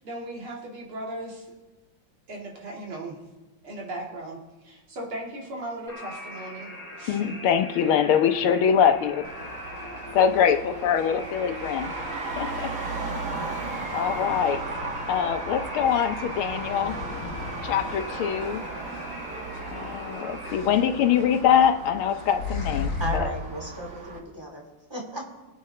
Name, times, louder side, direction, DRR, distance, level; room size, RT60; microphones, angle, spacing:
voice 1, 0.0-1.5 2.3-3.2 3.6-7.2, right 1 dB, 75° right, -2 dB, 3.0 m, -37 dB
sound 1, 5.9-20.6, left 1 dB, 10° left, 4.4 m, -41 dB
voice 2, 7.1-9.3 10.1-11.9 12.4-12.7 13.1-13.3 13.9-14.6 15.1-17.0 17.6-18.6 19.7-23.3, left 8 dB, 75° left, 8 dB, 1.6 m, -23 dB
sound 2, 8.2-23.2, left 5 dB, 55° left, 1.6 m, -39 dB
Traffic noise roadway noise, 9.2-24.2, right 3 dB, 45° right, 1.3 m, -36 dB
voice 3, 23.0-24.6 24.9-25.3, equal, 10° right, -1 dB, 2.6 m, -34 dB
24.0 x 8.6 x 3.3 m, 1.2 s
omnidirectional pair, 2.4 m